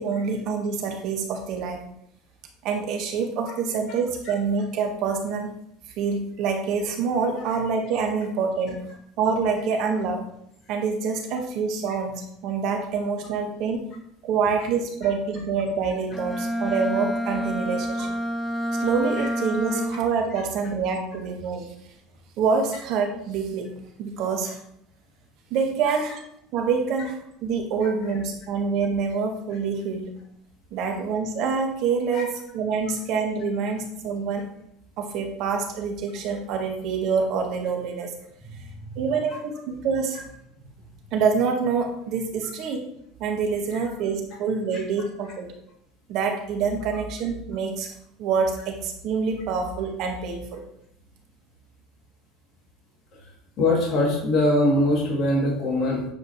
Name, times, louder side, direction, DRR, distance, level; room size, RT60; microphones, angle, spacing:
voice 1, 0.0-1.8 2.6-5.6 6.0-8.8 9.2-10.2 10.7-13.9 14.3-18.1 18.8-21.7 22.4-23.7 24.0-24.6 25.5-26.2 26.5-30.1 30.7-34.4 35.0-38.1 39.0-40.2 41.1-42.9 43.2-45.5 46.1-47.9 48.2-50.6, right 5 dB, 60° right, 4 dB, 1.6 m, -26 dB
Bowed string instrument, 16.1-20.2, equal, 15° left, 1.0 m, -28 dB
voice 2, 53.6-56.1, left 1 dB, 50° left, -4 dB, 2.7 m, -22 dB
8.8 x 5.0 x 3.2 m, 0.73 s
hypercardioid pair, 85°, 0 cm